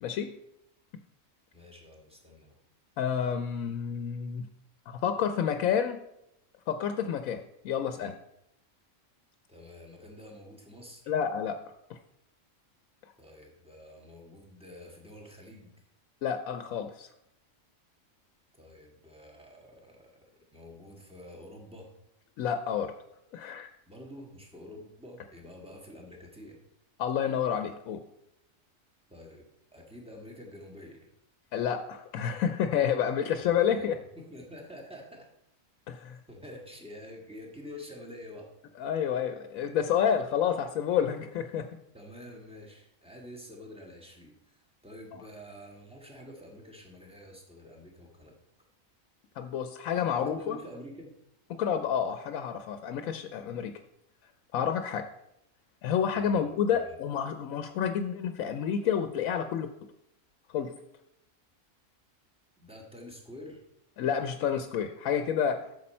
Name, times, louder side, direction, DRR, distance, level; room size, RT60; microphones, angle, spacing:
voice 1, 0.0-0.3 3.0-4.4 4.9-6.0 6.7-8.2 11.1-11.6 11.9-12.0 16.2-17.1 22.4-22.9 23.3-23.7 27.0-28.0 31.5-34.0 35.9-36.2 38.8-41.7 49.4-50.6 51.5-53.7 54.5-55.1 55.8-59.7 60.5-60.7 64.0-65.6, left 8 dB, 85° left, 8 dB, 1.0 m, -29 dB
voice 2, 1.5-2.6 9.5-11.1 13.2-15.7 18.5-20.1 20.5-21.9 23.9-26.6 29.1-29.5 29.7-31.1 33.4-35.3 36.3-38.5 41.9-48.4 50.2-51.2 56.1-56.4 56.7-57.0 62.6-63.6, left 1 dB, 5° right, 0 dB, 1.5 m, -48 dB
8.4 x 6.6 x 4.3 m, 0.80 s
omnidirectional pair, 1.4 m